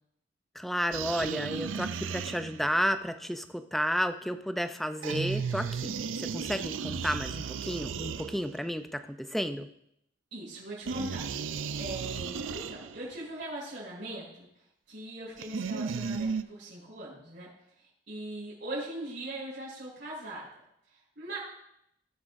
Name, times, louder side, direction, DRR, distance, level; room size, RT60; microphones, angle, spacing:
voice 1, 0.6-5.9 6.2-9.7, equal, ahead, 9 dB, 0.4 m, -32 dB
sound 1, 0.9-2.8 5.0-8.7 10.9-13.1 15.4-16.4, right 6 dB, 90° right, 0.5 m, -35 dB
voice 2, 10.3-14.5 14.9-17.5 17.8-20.5 20.9-21.4, right 1 dB, 60° right, -10 dB, 5.0 m, -40 dB
20.0 x 7.7 x 2.6 m, 0.77 s
head